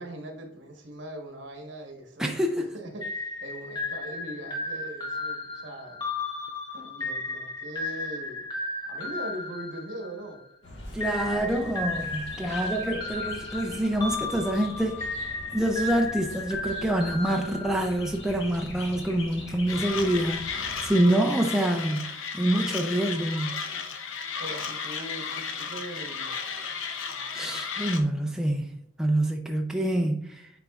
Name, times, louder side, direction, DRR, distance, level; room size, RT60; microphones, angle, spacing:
voice 1, 0.0-6.0 6.7-8.5 8.9-10.4 10.9-11.6 20.6-20.8 24.4-26.4, right 1 dB, 65° right, 1.3 m, -41 dB
voice 2, 2.2-2.6 10.9-23.6 27.3-30.5, right 1 dB, 5° right, 0.4 m, -26 dB
sound 1, 3.0-10.4 11.0-18.2, left 3 dB, 20° left, 0.9 m, -35 dB
sound 2, 10.6-20.9, left 1 dB, 65° left, 1.2 m, -43 dB
Mechanisms, 19.7-28.0, left 6 dB, 80° left, 0.7 m, -34 dB
9.9 x 3.9 x 2.4 m
head